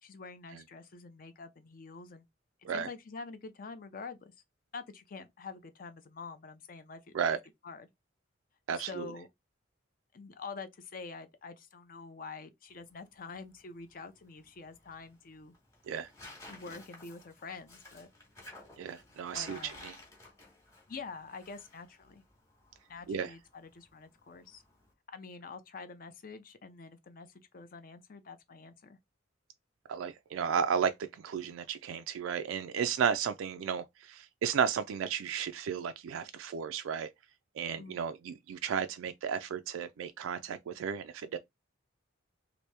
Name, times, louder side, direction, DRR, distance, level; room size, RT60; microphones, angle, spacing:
voice 1, 0.0-2.2 2.7-4.3 4.7-7.4 7.6-7.9 8.7-9.3 10.1-15.5 16.5-18.1 19.3-19.9 20.9-22.2 22.9-24.6 25.1-29.0 33.6-33.7 37.8-38.0, left 4 dB, 45° left, 0.4 m, -46 dB
voice 2, 8.7-9.1 15.9-16.1 18.8-19.9 23.1-23.3 29.9-37.1 37.6-41.4, right 7 dB, 85° right, 0.3 m, -33 dB
Tearing, 12.7-24.9, left 2 dB, 15° left, 1.0 m, -55 dB
2.9 x 2.6 x 3.2 m
head